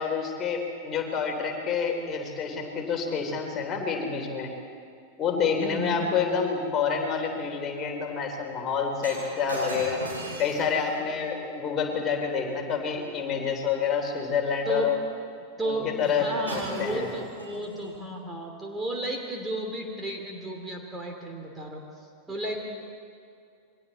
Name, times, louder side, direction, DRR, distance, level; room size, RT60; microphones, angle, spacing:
voice 1, 0.0-4.5 5.2-10.0 10.4-15.0 15.6-17.1, left 6 dB, 30° left, 2 dB, 3.6 m, -28 dB
voice 2, 5.6-6.2 14.7-14.9 15.6-21.8 22.3-22.6, right 1 dB, 10° right, 1 dB, 3.0 m, -33 dB
Shatter, 9.0-13.4 16.0-16.2 16.5-18.0 18.7-18.9, right 2 dB, 75° right, 7.7 m, -40 dB
29.0 x 23.0 x 4.3 m, 2.4 s
figure-of-eight pair, 90°, 0 cm